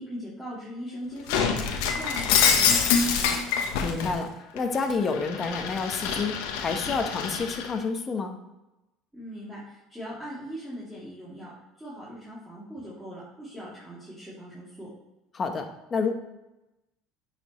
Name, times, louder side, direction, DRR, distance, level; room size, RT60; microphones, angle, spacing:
voice 1, 0.0-1.6 1.9-3.4 9.1-11.5 11.8-14.9, equal, 5° right, -10 dB, 2.8 m, -40 dB
Shatter, 1.3-4.1 4.6-7.7, left 6 dB, 85° left, 1.0 m, -25 dB
voice 2, 3.8-8.4 15.3-16.1, left 4 dB, 30° left, 5 dB, 1.1 m, -29 dB
9.7 x 5.2 x 3.1 m, 0.98 s
supercardioid pair, 110°, 0 cm